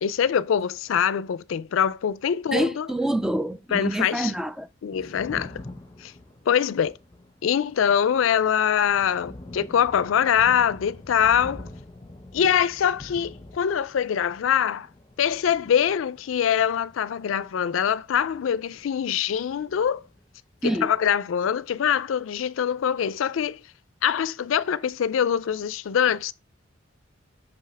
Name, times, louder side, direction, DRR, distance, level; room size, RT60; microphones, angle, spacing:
voice 1, 0.0-2.9 3.7-4.3 4.8-5.6 6.0-6.1 6.5-6.9 7.4-11.7 12.3-14.9 15.2-20.0 20.6-23.6 24.0-26.3, left 8 dB, 85° left, 0.4 m, -23 dB
voice 2, 2.5-4.7 20.6-20.9, right 1 dB, 5° right, 0.3 m, -26 dB
Thunder, 4.7-19.1 19.4-20.6, left 2 dB, 25° left, 0.9 m, -46 dB
5.6 x 5.4 x 3.2 m
head